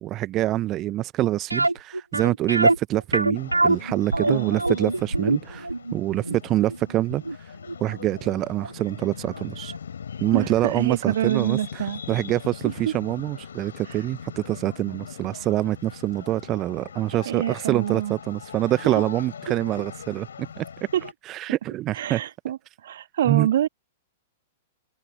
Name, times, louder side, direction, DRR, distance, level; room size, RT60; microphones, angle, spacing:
voice 1, 0.0-7.5 7.8-9.7 10.2-20.3 20.6-20.7 21.3-22.2 23.3-23.5, right 15 dB, 30° right, 0.9 m, -26 dB
sound 1, 1.5-8.4 8.6-8.7 9.3-9.4 9.7-9.8, right 2 dB, 85° right, 2.7 m, -24 dB
sound 2, 3.3-21.1, left 7 dB, 65° left, 7.0 m, -41 dB
voice 2, 4.2-4.5 10.3-12.0 12.6-12.9 17.3-18.1 18.8-18.9 20.9-21.1 21.9-22.6 22.8-23.7, right 11 dB, 55° right, 1.4 m, -26 dB
figure-of-eight pair, 100°, 0 cm